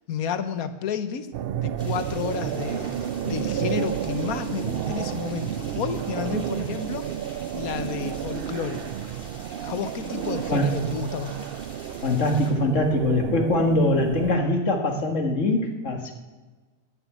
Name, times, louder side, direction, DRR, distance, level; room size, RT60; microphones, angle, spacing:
voice 1, 0.1-8.8 9.6-11.4, left 7 dB, 75° left, 11 dB, 1.4 m, -31 dB
sound 1, 1.3-14.4, right 10 dB, 85° right, 0.5 m, -31 dB
sound 2, 1.8-12.5, left 1 dB, 35° left, 2.8 m, -47 dB
voice 2, 12.0-16.1, left 1 dB, 55° left, 4 dB, 2.0 m, -23 dB
11.0 x 10.0 x 8.5 m, 1.3 s
omnidirectional pair, 1.5 m